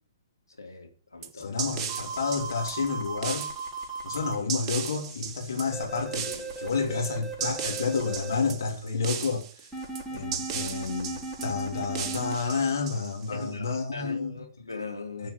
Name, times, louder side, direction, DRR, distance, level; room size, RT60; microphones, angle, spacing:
voice 1, 0.6-1.5 13.3-15.3, left 3 dB, 85° left, 3.9 m, -39 dB
sound 1, 1.2-13.4, right 8 dB, 25° right, 1.5 m, -37 dB
voice 2, 1.3-3.5 4.0-9.7 10.1-14.4 15.2-15.3, left 4 dB, 60° left, 3.1 m, -30 dB
sound 2, 1.9-4.4 5.7-8.4 9.7-12.4, right 4 dB, 5° left, 5.2 m, -36 dB
13.0 x 7.3 x 7.9 m
figure-of-eight pair, 120°, 2 cm